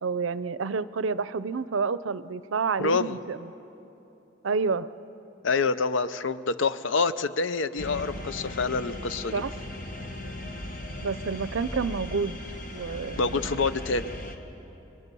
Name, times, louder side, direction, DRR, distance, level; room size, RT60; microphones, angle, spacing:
voice 1, 0.0-3.5 4.4-4.9 9.3-9.5 11.0-12.4 12.7-13.5, right 5 dB, 80° right, 15 dB, 0.6 m, -29 dB
voice 2, 2.8-3.2 5.4-9.4 13.2-14.1, left 4 dB, 70° left, 13 dB, 0.6 m, -27 dB
sound 1, 7.8-14.4, left 1 dB, 45° left, 1.7 m, -38 dB
29.5 x 22.5 x 5.5 m, 3.0 s
head